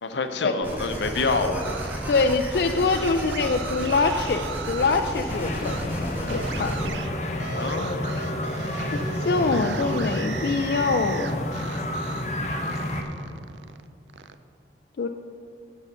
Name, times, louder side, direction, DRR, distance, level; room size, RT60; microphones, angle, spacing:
voice 1, 0.0-1.8 7.6-8.2, left 3 dB, 85° left, 7 dB, 0.7 m, -27 dB
sound 1, 0.6-6.9, equal, 10° right, 1.3 m, -33 dB
sound 2, 1.0-5.0 5.6-5.8 6.3-12.3 12.6-14.3, right 6 dB, 80° right, 0.4 m, -38 dB
voice 2, 2.1-6.7 9.1-11.4 15.0-15.1, left 4 dB, 60° left, 5 dB, 0.4 m, -24 dB
sound 3, 5.3-13.0, left 1 dB, 40° left, 0.8 m, -30 dB
9.8 x 5.6 x 6.8 m, 2.4 s
head